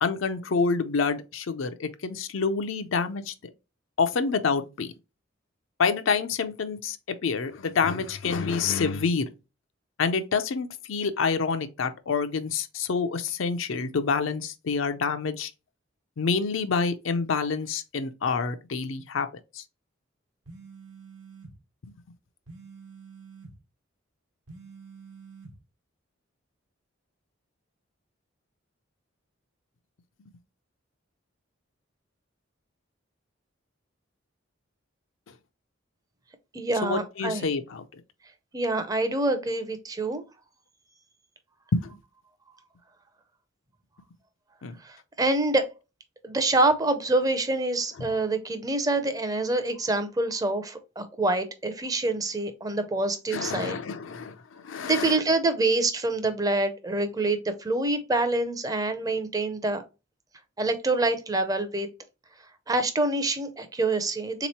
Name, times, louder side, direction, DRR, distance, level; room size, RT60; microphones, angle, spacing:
voice 1, 0.0-3.3 4.0-4.9 5.8-9.3 10.0-15.5 16.2-19.3 19.5-19.6 36.8-37.8 41.7-41.9 44.6-44.8 53.3-55.2, left 5 dB, 75° left, 0.5 m, -27 dB
sound 1, 20.4-21.5 22.5-23.5 24.5-25.5, right 5 dB, 75° right, 1.0 m, -47 dB
voice 2, 36.5-37.5 38.5-40.2 44.8-45.7 46.2-53.8 54.8-59.8 60.6-61.9 62.7-64.5, right 2 dB, 20° right, 0.5 m, -26 dB
3.6 x 3.0 x 4.2 m
head